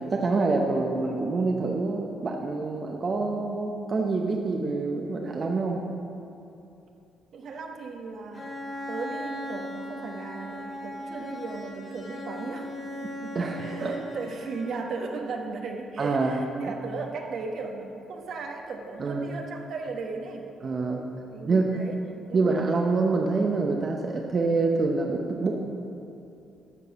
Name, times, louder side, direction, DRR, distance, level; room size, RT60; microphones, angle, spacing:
voice 1, 0.0-5.8 13.3-14.1 16.0-16.4 19.0-19.4 20.6-21.0 21.4-21.6 22.3-25.5, right 3 dB, 45° right, 1 dB, 0.9 m, -26 dB
voice 2, 7.3-8.6 8.9-12.7 13.0-20.5 21.3-22.0 22.3-22.5, right 4 dB, 65° right, 2 dB, 1.1 m, -36 dB
Bowed string instrument, 8.3-15.0, left 1 dB, 40° left, 1.8 m, -38 dB
12.5 x 4.7 x 7.0 m, 2.7 s
cardioid pair, 90°, 0 cm